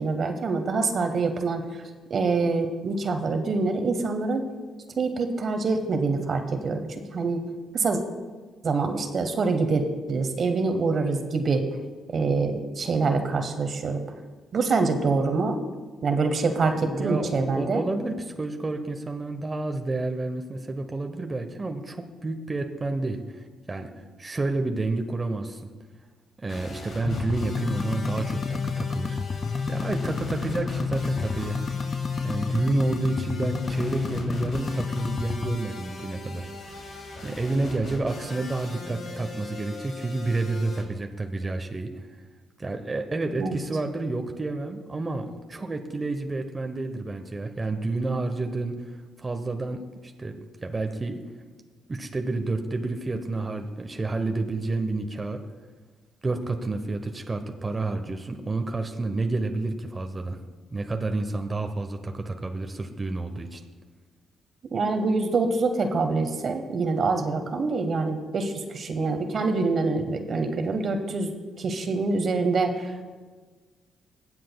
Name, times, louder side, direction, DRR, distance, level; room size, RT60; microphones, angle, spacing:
voice 1, 0.0-1.6 2.1-4.4 5.0-7.4 7.7-8.0 8.6-9.8 10.1-11.6 12.1-14.0 14.5-15.6 16.0-17.8 43.4-43.6 64.7-71.3 71.6-73.0, right 3 dB, 55° right, 6 dB, 1.1 m, -25 dB
voice 2, 16.5-25.7 26.4-31.6 32.2-36.8 37.2-42.0 42.6-51.2 51.9-55.4 56.2-60.4 60.7-63.6, right 2 dB, 30° right, 5 dB, 0.9 m, -30 dB
sound 1, 26.5-40.8, left 2 dB, 65° left, 2.8 m, -40 dB
sound 2, 27.1-35.6, left 5 dB, 40° left, 0.3 m, -30 dB
22.5 x 7.6 x 2.3 m, 1.4 s
supercardioid pair, 60°, 0 cm